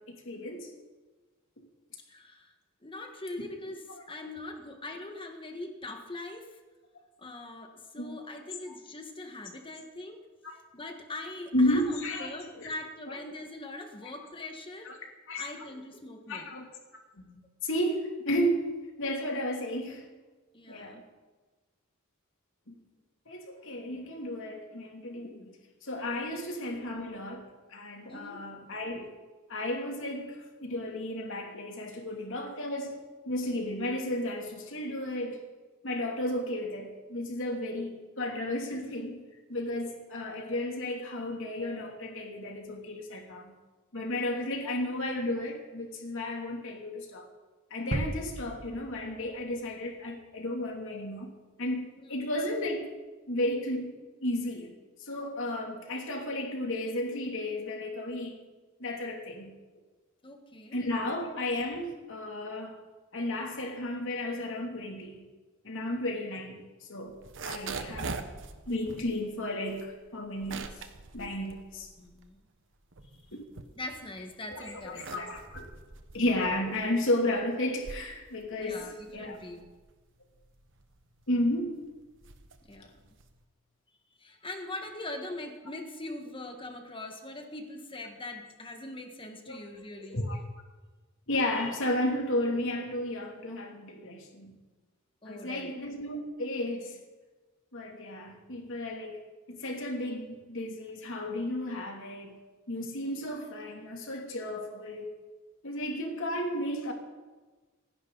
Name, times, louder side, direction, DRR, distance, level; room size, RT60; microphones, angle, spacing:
voice 1, 0.1-0.7 8.0-8.2 8.7-8.8 10.4-10.6 11.5-12.7 13.1-13.2 14.0-14.1 14.8-14.9 15.3-15.5 16.3-16.6 17.1-18.7 19.0-20.0 20.7-21.0 22.7-22.8 23.3-25.4 25.8-29.1 29.5-33.0 33.2-35.4 35.8-39.2 39.5-43.5 43.9-47.3 47.7-51.3 51.6-52.9 53.3-53.9 54.2-54.7 55.0-58.4 58.8-59.5 60.7-62.8 63.1-65.2 65.6-67.2 67.4-68.1 68.7-70.9 71.1-71.9 73.3-73.4 74.5-75.7 76.1-79.4 81.3-81.7 89.5-89.6 90.1-90.4 91.3-94.5 95.2-97.0 97.7-99.2 99.5-102.3 102.7-105.1 105.6-106.9, left 1 dB, 65° left, 1 dB, 2.8 m, -33 dB
voice 2, 2.1-2.5 2.8-6.6 7.2-10.2 10.7-14.9 15.4-16.5 20.5-21.0 26.3-26.4 28.1-28.4 44.5-44.7 52.0-52.1 60.2-61.1 67.7-68.0 72.0-72.4 73.8-75.3 78.6-79.7 82.7-82.9 84.2-90.2 95.2-95.7, left 2 dB, 25° left, 4 dB, 1.6 m, -42 dB
sound 1, 47.9-49.8 50.2-50.3, right 2 dB, 40° right, 0.8 m, -36 dB
sound 2, 67.1-72.4 72.8-74.2 74.7-83.4, right 4 dB, 60° right, 1.1 m, -43 dB
27.5 x 10.5 x 4.1 m, 1.3 s
head